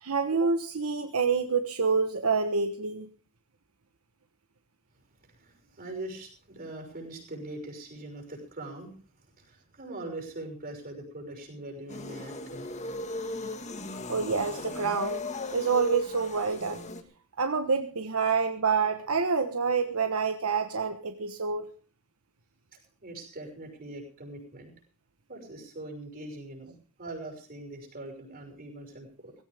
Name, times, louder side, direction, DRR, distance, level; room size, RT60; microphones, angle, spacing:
voice 1, 0.0-3.1 14.1-15.2 15.5-16.8 17.4-21.7, right 5 dB, 75° right, 7 dB, 1.2 m, -27 dB
voice 2, 5.3-8.9 9.4-12.7 22.7-24.7 25.3-26.7 27.0-29.3, right 2 dB, 45° right, 4 dB, 6.1 m, -42 dB
sound 1, 11.9-17.0, left 2 dB, 30° left, 1.7 m, -37 dB
17.5 x 16.5 x 3.5 m, 0.39 s
head